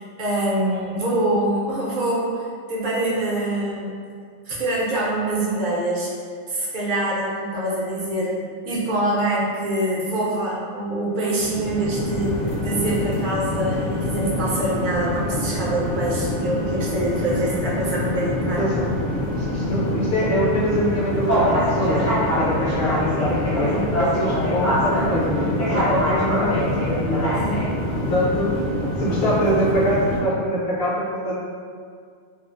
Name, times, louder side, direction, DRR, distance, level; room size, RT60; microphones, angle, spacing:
voice 1, 0.0-4.0 4.5-6.1 6.5-12.4 12.6-18.6 27.3-27.6, right 1 dB, 55° right, -5 dB, 0.6 m, -25 dB
sound 1, 11.4-30.2, equal, 20° left, 0.5 m, -24 dB
voice 2, 18.6-27.3 28.0-28.6 29.0-31.4, equal, 60° left, -6 dB, 0.7 m, -24 dB
2.4 x 2.3 x 2.4 m, 2.1 s
omnidirectional pair, 1.2 m